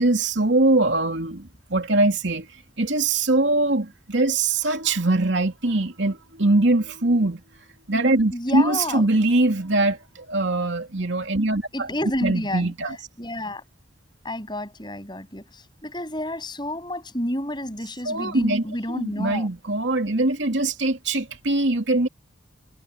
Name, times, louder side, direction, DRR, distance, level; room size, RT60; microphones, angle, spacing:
voice 1, 0.0-2.5 2.8-7.4 7.9-11.9 12.2-13.0 18.0-22.1, right 2 dB, 75° right, 2.8 m, -22 dB
voice 2, 8.3-9.1 11.7-12.7 13.2-13.6 14.2-19.5, left 1 dB, 25° left, 6.9 m, -30 dB
head